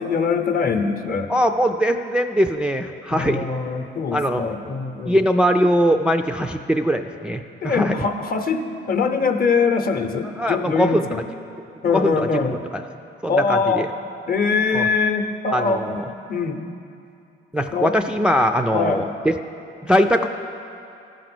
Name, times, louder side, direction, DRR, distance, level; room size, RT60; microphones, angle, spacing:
voice 1, 0.0-1.3 3.1-5.2 7.6-11.2 11.8-12.5 13.3-13.9 14.3-16.0 16.3-16.6 17.7-18.0 18.7-19.1, left 5 dB, 45° left, 7 dB, 0.8 m, -22 dB
voice 2, 1.3-3.5 4.1-4.4 5.1-8.1 10.4-11.1 11.9-12.1 12.5-12.8 13.2-13.9 14.7-14.9 15.5-16.1 17.5-19.3 19.8-20.3, equal, 5° right, 4 dB, 0.3 m, -21 dB
13.5 x 5.1 x 6.1 m, 2.6 s
cardioid pair, 90°, 20 cm